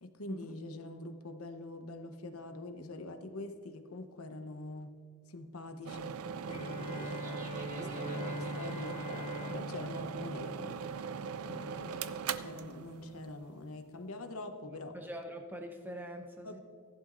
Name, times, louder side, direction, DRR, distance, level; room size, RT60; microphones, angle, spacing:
voice 1, 0.0-4.9 5.3-7.2 7.7-10.9 11.4-14.9 16.4-16.6, left 2 dB, 90° left, 7 dB, 1.0 m, -45 dB
sound 1, 5.9-13.5, right 6 dB, 85° right, 0.4 m, -40 dB
Bowed string instrument, 6.5-11.4, left 1 dB, 25° left, 1.2 m, -43 dB
Laughter, 6.7-12.3, right 3 dB, 40° right, 1.0 m, -56 dB
voice 2, 14.7-16.6, equal, 10° right, 3 dB, 0.9 m, -44 dB
15.0 x 11.0 x 2.6 m, 2.2 s
head